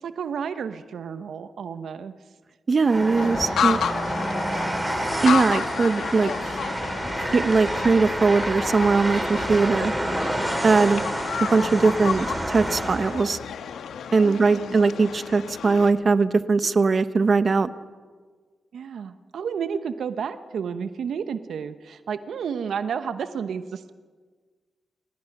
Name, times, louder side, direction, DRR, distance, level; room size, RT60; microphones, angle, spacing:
voice 1, 0.0-2.1 10.8-11.1 14.2-14.8 18.7-23.9, right 7 dB, 75° right, 11 dB, 0.9 m, -31 dB
voice 2, 2.7-3.8 5.2-6.3 7.2-9.9 10.6-11.0 11.5-13.4 14.1-17.7, right 4 dB, 50° right, 13 dB, 0.9 m, -20 dB
Train, 2.8-13.3, right 1 dB, 10° right, 5.0 m, -28 dB
sound 1, 3.2-15.9, left 7 dB, 80° left, 1.2 m, -32 dB
29.0 x 17.5 x 5.9 m, 1.5 s
supercardioid pair, 45°, 0 cm